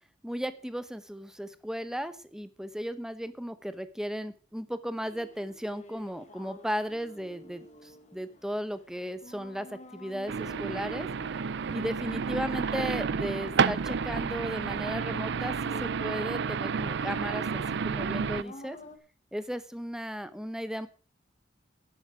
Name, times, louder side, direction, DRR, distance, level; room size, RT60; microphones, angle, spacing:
voice 1, 0.2-11.1 11.7-18.8 19.3-20.9, equal, 5° right, 12 dB, 1.0 m, -36 dB
sound 1, 5.0-19.0, left 1 dB, 40° left, 2.0 m, -50 dB
sound 2, 10.3-18.4, right 6 dB, 65° right, 0.5 m, -30 dB
12.0 x 10.5 x 5.0 m, 0.37 s
head